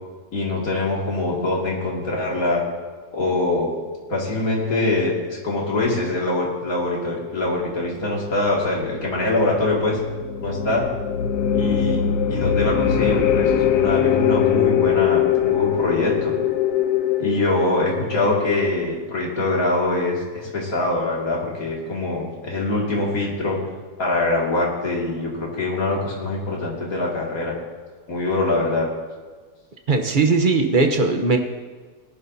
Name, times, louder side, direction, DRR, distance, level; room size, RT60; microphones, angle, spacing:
voice 1, 0.3-2.6 3.1-3.7 4.1-10.0 10.4-10.9 11.5-12.0 12.3-16.3 17.2-23.6 24.0-27.5 28.1-28.9, left 2 dB, 60° left, -3 dB, 2.8 m, -23 dB
sound 1, 8.6-18.8, left 9 dB, 85° left, 1.4 m, -22 dB
voice 2, 29.9-31.4, right 3 dB, 40° right, 5 dB, 0.9 m, -18 dB
18.5 x 11.0 x 2.8 m, 1.4 s
omnidirectional pair, 1.7 m